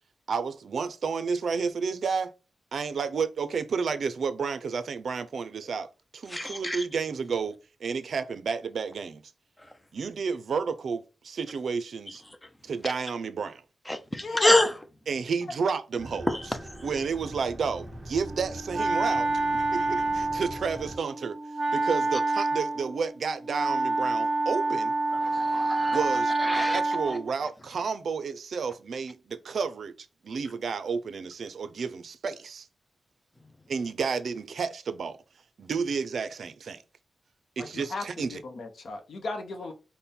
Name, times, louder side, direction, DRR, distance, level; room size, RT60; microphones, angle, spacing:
voice 1, 0.3-2.3 2.7-9.2 9.9-12.2 12.6-13.6 15.1-16.3 16.8-21.4 21.7-24.9 25.9-32.7 33.7-35.2 35.6-36.8 37.6-38.4, right 5 dB, 60° right, 0.5 m, -31 dB
voice 2, 6.3-6.8 13.9-14.7 16.3-16.4 25.2-26.0 26.4-26.8, left 1 dB, 10° left, 0.5 m, -26 dB
voice 3, 14.2-14.6 37.9-38.0 38.3-39.7, left 2 dB, 60° left, 0.7 m, -34 dB
sound 1, 16.0-21.0, equal, 15° right, 0.9 m, -43 dB
Wind instrument woodwind instrument, 18.2-27.3, right 2 dB, 45° right, 0.9 m, -28 dB
5.3 x 2.2 x 4.2 m
wide cardioid pair, 165°, 0 cm